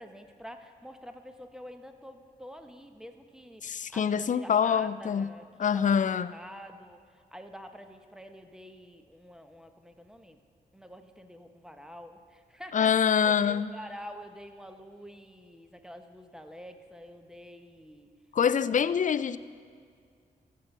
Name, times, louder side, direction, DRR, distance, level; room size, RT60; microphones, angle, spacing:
voice 1, 0.0-5.5 5.7-10.4 10.7-18.1 18.6-19.0, equal, 5° right, 6 dB, 1.0 m, -47 dB
voice 2, 3.6-5.3 5.6-6.3 12.7-13.7 18.3-19.4, left 7 dB, 45° left, 16 dB, 0.4 m, -25 dB
14.5 x 7.4 x 5.5 m, 2.1 s
cardioid pair, 50°, 18 cm